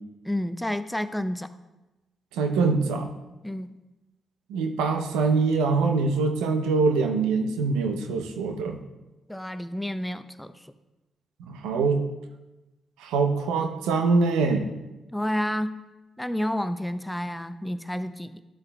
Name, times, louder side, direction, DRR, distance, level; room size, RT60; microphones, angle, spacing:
voice 1, 0.2-1.5 3.4-3.8 9.3-10.5 15.1-15.8 16.2-18.4, left 1 dB, 5° left, 11 dB, 0.6 m, -30 dB
voice 2, 2.3-3.1 4.5-8.8 11.4-12.0 13.0-14.7, right 4 dB, 80° right, 5 dB, 0.7 m, -24 dB
11.5 x 8.1 x 2.3 m, 1.1 s
hypercardioid pair, 45°, 0 cm